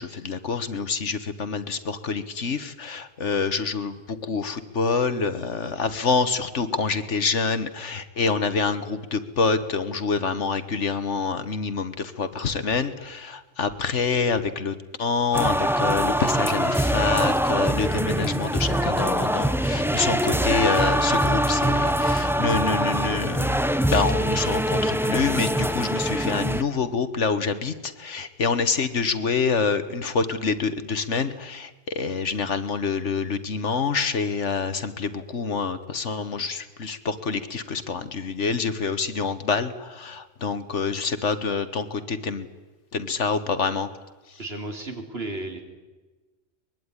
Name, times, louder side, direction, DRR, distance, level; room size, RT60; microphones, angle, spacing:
voice 1, 0.0-23.6 23.9-42.5 42.9-43.9, left 5 dB, 70° left, 11 dB, 1.7 m, -26 dB
sound 1, 15.3-26.6, equal, ahead, 0.7 m, -23 dB
voice 2, 44.4-45.6, right 2 dB, 55° right, 4 dB, 3.6 m, -33 dB
23.5 x 21.5 x 9.8 m, 1.2 s
omnidirectional pair, 1.2 m